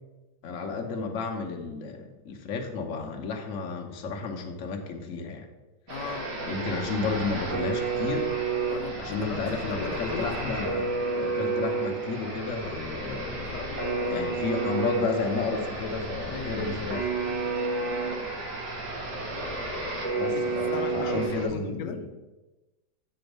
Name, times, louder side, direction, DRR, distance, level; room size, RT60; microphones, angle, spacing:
voice 1, 0.4-5.5 6.5-8.3 9.0-10.9 11.1-13.5 14.1-17.1 20.2-22.1, left 4 dB, 55° left, 3 dB, 1.1 m, -32 dB
voice 2, 5.9-6.3 8.7-10.4 13.4-14.3 16.3-16.8 20.3-20.4 20.7-22.0, left 6 dB, 85° left, 6 dB, 1.2 m, -38 dB
sound 1, 5.9-21.4, right 3 dB, 75° right, 2.0 m, -31 dB
7.1 x 4.1 x 6.6 m, 1.1 s
omnidirectional pair, 1.8 m